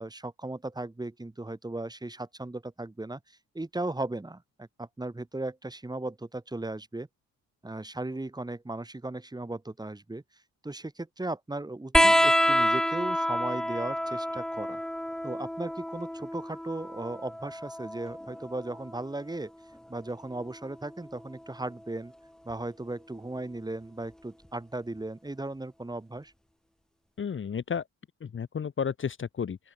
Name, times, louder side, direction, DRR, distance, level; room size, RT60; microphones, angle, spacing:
voice 1, 0.0-3.2 3.5-7.1 7.6-10.2 10.6-14.8 15.2-19.5 19.9-22.1 22.5-26.3, right 2 dB, 15° right, 3.9 m, -36 dB
sound 1, 11.9-19.0 20.4-21.2 22.5-22.6, equal, ahead, 1.0 m, -28 dB
voice 2, 27.2-27.8 28.2-29.6, left 7 dB, 40° left, 1.9 m, -32 dB
open air
cardioid pair, 90°, 30 cm